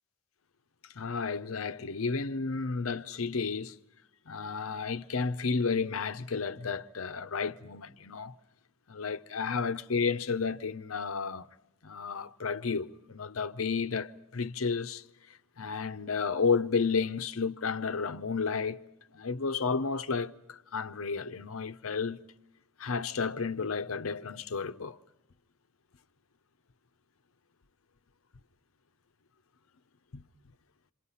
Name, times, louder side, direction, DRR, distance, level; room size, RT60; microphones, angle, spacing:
voice 1, 0.9-3.7 4.3-8.3 8.9-11.5 11.8-18.8 19.1-22.2 22.8-25.0 30.1-30.2, left 5 dB, 85° left, 0.8 m, -32 dB
27.5 x 26.5 x 5.6 m
head